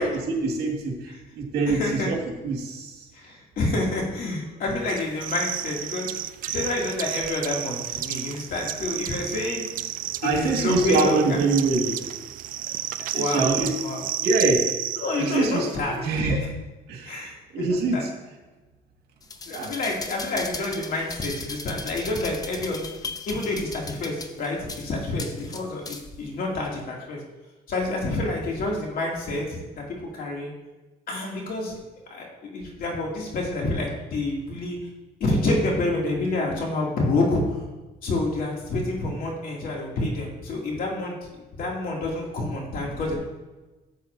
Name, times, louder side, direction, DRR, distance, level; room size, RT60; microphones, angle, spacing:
voice 1, 0.0-2.2 2.4-3.1 8.4-8.5 10.1-12.0 13.1-13.7 14.2-14.6 15.2-16.4 16.9-18.1 19.5-19.7, right 3 dB, 75° right, 1 dB, 1.9 m, -25 dB
voice 2, 1.8-2.1 3.1-6.1 6.5-9.6 10.2-11.4 13.1-14.0 15.0-16.4 17.0-18.1 19.5-22.8 23.3-27.2 27.7-30.5 31.1-31.8 32.1-34.8 35.2-37.6 38.0-41.1 41.5-43.1, left 2 dB, 60° left, -2 dB, 2.7 m, -28 dB
sound 1, 4.9-15.8, right 12 dB, 55° right, 0.4 m, -32 dB
sound 2, 19.2-26.2 26.7-26.8, left 3 dB, 20° left, 0.8 m, -37 dB
12.5 x 7.6 x 2.7 m, 1.1 s
cardioid pair, 110°, 17 cm